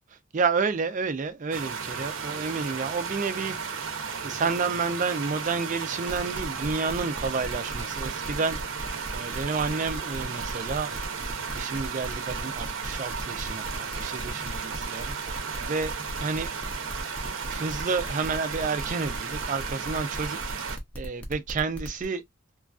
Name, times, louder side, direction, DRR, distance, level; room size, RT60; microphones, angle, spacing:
voice 1, 0.3-3.6 4.2-8.6 9.1-10.9 11.5-15.9 16.2-16.5 17.5-22.2, right 4 dB, 40° right, 0.4 m, -30 dB
sound 1, 1.5-20.8, right 6 dB, 70° right, 0.7 m, -34 dB
sound 2, 6.1-22.1, equal, 5° left, 0.6 m, -39 dB
3.0 x 2.4 x 2.4 m
head